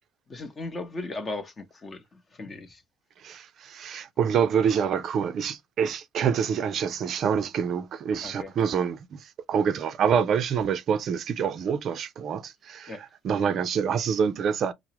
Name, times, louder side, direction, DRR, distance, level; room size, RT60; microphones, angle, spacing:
voice 1, 0.3-2.8 8.2-8.5 12.9-13.0, left 2 dB, 30° left, 0.8 m, -37 dB
voice 2, 3.2-14.7, right 7 dB, 50° right, 0.4 m, -26 dB
4.5 x 2.0 x 2.8 m
supercardioid pair, 85°, 0 cm